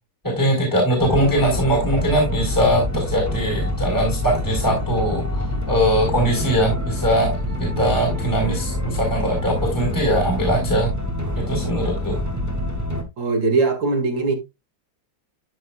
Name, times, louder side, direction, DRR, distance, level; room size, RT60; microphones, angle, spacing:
voice 1, 0.2-7.3 7.6-10.9 11.3-12.2, equal, 10° left, 3.9 m, -21 dB
sound 1, 1.0-13.0, left 1 dB, 10° right, 2.2 m, -26 dB
voice 2, 13.2-14.3, right 3 dB, 70° right, 2.9 m, -20 dB
12.5 x 7.4 x 2.3 m
omnidirectional pair, 2.1 m